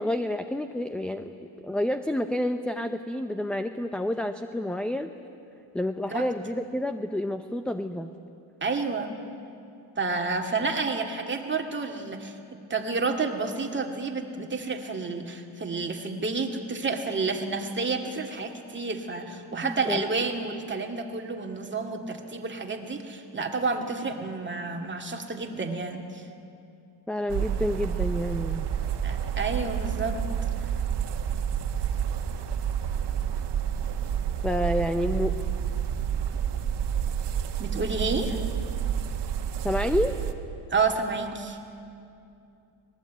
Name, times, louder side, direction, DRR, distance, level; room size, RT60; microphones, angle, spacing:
voice 1, 0.0-1.3 1.6-5.1 5.7-8.1 19.6-20.0 27.1-28.7 34.4-35.3 39.6-40.2, left 1 dB, ahead, 9 dB, 0.5 m, -29 dB
voice 2, 8.6-9.1 10.0-12.4 12.7-26.2 29.0-30.2 37.6-38.4 40.7-41.6, right 4 dB, 20° right, 3 dB, 2.1 m, -30 dB
sound 1, 27.3-40.3, right 8 dB, 55° right, 1.7 m, -29 dB
25.0 x 19.5 x 9.3 m, 2.6 s
cardioid pair, 135°, 49 cm